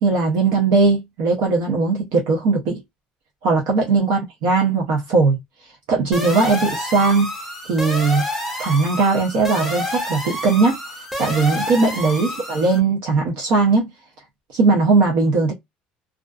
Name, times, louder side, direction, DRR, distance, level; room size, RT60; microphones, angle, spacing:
voice 1, 0.0-2.8 3.4-5.4 5.9-7.3 7.7-8.2 8.6-10.8 11.2-13.9 14.5-15.5, right 4 dB, 65° right, 0.6 m, -18 dB
sound 1, 6.1-12.8, left 1 dB, ahead, 0.6 m, -28 dB
2.4 x 2.3 x 2.3 m
cardioid pair, 180°, 3 cm